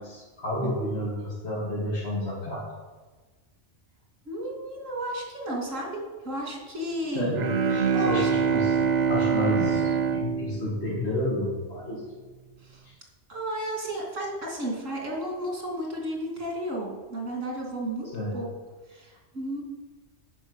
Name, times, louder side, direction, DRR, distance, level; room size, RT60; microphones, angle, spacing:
voice 1, 0.0-2.6 7.1-8.7 9.1-12.0 18.1-18.4, left 1 dB, 55° left, -8 dB, 2.8 m, -30 dB
voice 2, 4.2-7.3 7.9-8.7 12.6-12.8 13.3-18.5 18.9-19.6, right 1 dB, 80° right, -1 dB, 3.1 m, -33 dB
Bowed string instrument, 7.3-11.6, right 6 dB, 50° right, 0.6 m, -25 dB
10.0 x 6.0 x 8.2 m, 1.3 s
omnidirectional pair, 1.3 m